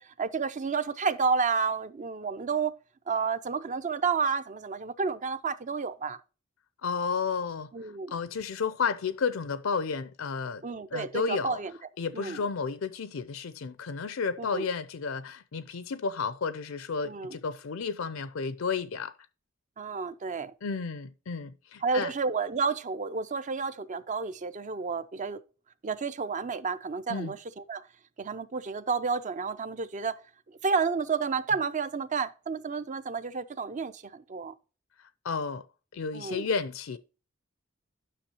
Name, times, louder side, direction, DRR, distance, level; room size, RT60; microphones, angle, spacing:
voice 1, 0.0-2.7 3.1-6.2 7.7-8.2 10.6-11.7 12.1-12.4 14.4-14.7 17.0-17.3 19.8-20.5 21.8-25.4 25.8-27.9 28.2-30.2 30.5-34.5 36.1-36.5, right 5 dB, 35° right, 0.5 m, -31 dB
voice 2, 6.8-10.6 10.9-11.6 12.0-19.1 20.6-22.1 27.1-27.3 35.0-35.6 35.9-37.0, left 5 dB, 80° left, 0.5 m, -32 dB
10.0 x 6.1 x 2.9 m
head